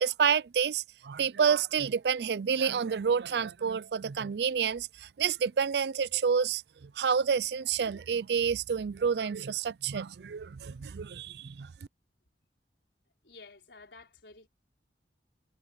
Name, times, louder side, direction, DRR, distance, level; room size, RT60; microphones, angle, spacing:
voice 1, 0.0-11.7, right 6 dB, 65° right, 0.4 m, -29 dB
voice 2, 13.2-14.5, left 3 dB, 80° left, 4.6 m, -52 dB
head